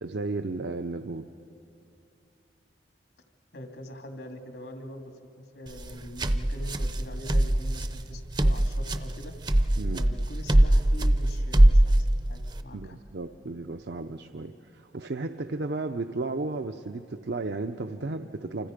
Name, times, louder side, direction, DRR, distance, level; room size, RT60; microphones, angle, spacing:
voice 1, 0.0-1.3 9.8-10.0 12.7-18.7, right 3 dB, 70° right, 7 dB, 0.6 m, -34 dB
voice 2, 3.5-9.6 9.9-13.0, equal, 80° left, 4 dB, 2.4 m, -43 dB
sound 1, 5.7-12.6, right 1 dB, 25° right, 0.6 m, -22 dB
28.5 x 26.0 x 5.1 m, 2.7 s
head